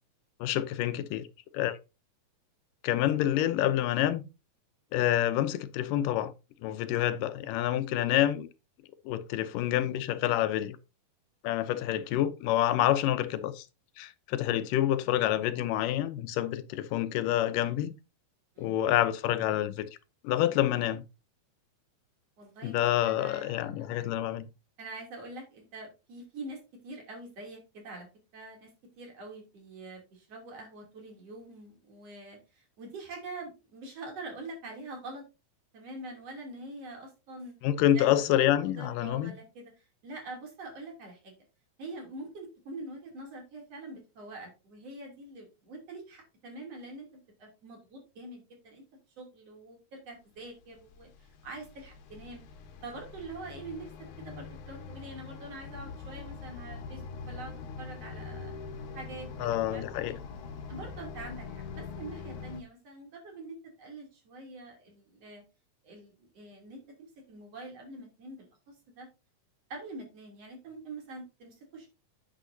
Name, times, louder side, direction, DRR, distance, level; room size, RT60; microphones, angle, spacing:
voice 1, 0.4-1.3 1.5-1.8 2.8-4.2 4.9-6.3 6.6-8.5 9.1-10.8 11.4-13.7 14.0-17.9 18.6-19.9 20.2-21.0 22.6-24.5 37.6-39.3 59.4-60.1, left 12 dB, 85° left, 2.4 m, -27 dB
voice 2, 22.4-23.6 23.9-24.1 24.8-28.1 28.3-28.7 29.0-35.2 35.7-37.5 37.9-38.2 38.6-41.3 41.8-47.1 47.4-48.8 49.2-52.4 52.8-58.5 58.9-60.1 60.7-65.4 65.8-69.1 69.7-71.9, right 2 dB, 50° right, 3.9 m, -45 dB
sound 1, 50.5-62.6, left 5 dB, 70° left, 2.4 m, -43 dB
10.0 x 8.5 x 2.7 m
omnidirectional pair, 3.7 m